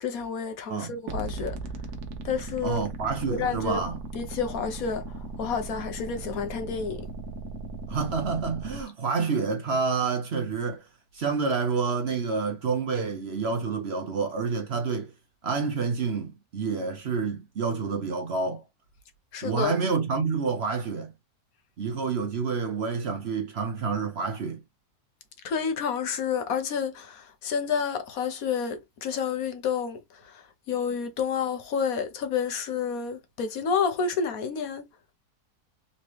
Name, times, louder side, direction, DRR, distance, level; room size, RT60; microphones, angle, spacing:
voice 1, 0.0-1.6 2.2-2.8 3.4-3.8 4.2-5.0 5.4-7.0 19.3-19.7 25.4-27.1 27.4-30.0 30.7-34.8, left 6 dB, 70° left, 1.3 m, -29 dB
sound 1, 1.1-8.8, right 3 dB, 90° right, 1.4 m, -37 dB
voice 2, 2.6-4.0 7.9-10.8 11.1-15.1 15.4-18.6 19.4-21.1 21.8-24.6, right 5 dB, 55° right, 0.8 m, -28 dB
4.1 x 3.1 x 2.9 m
omnidirectional pair, 1.6 m